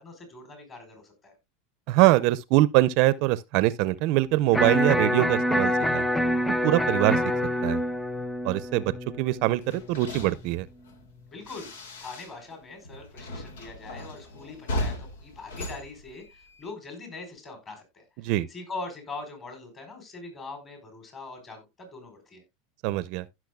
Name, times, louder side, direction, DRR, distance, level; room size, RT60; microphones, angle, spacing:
voice 1, 0.0-1.3 11.3-11.7 12.0-22.4, left 3 dB, 30° left, 4.7 m, -42 dB
voice 2, 1.9-6.0 6.6-7.2 7.6-7.8 8.4-10.7 18.2-18.5 22.8-23.3, right 17 dB, 55° right, 0.5 m, -23 dB
Electric guitar, 4.5-10.6, equal, 5° left, 0.4 m, -27 dB
sound 1, 9.6-12.6 12.8-16.7, left 1 dB, 90° left, 1.8 m, -37 dB
15.5 x 6.1 x 2.3 m
supercardioid pair, 125°, 0 cm